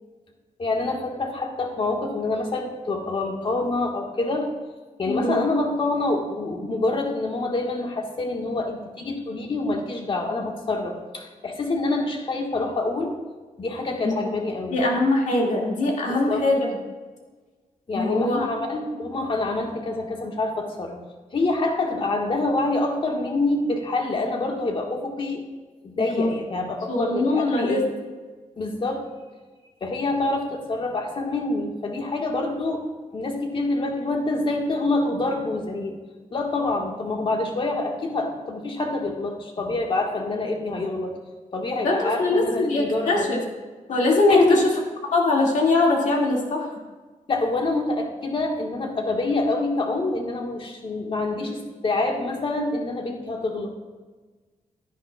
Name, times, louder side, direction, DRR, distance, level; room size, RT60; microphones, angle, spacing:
voice 1, 0.6-4.5 5.0-13.1 13.6-14.8 16.1-16.5 17.9-21.0 21.3-25.4 25.8-27.9 28.6-29.1 29.8-32.8 33.1-35.9 36.3-41.2 41.5-43.3 44.3-44.6 47.3-53.8, left 2 dB, 40° left, 2 dB, 1.6 m, -26 dB
voice 2, 5.1-5.4 14.0-14.1 14.7-16.6 17.9-18.5 26.0-26.3 26.9-27.8 41.8-43.4 43.9-44.6 45.1-46.7, left 2 dB, 70° left, -1 dB, 2.3 m, -22 dB
12.5 x 10.0 x 2.4 m, 1.4 s
cardioid pair, 95°, 13 cm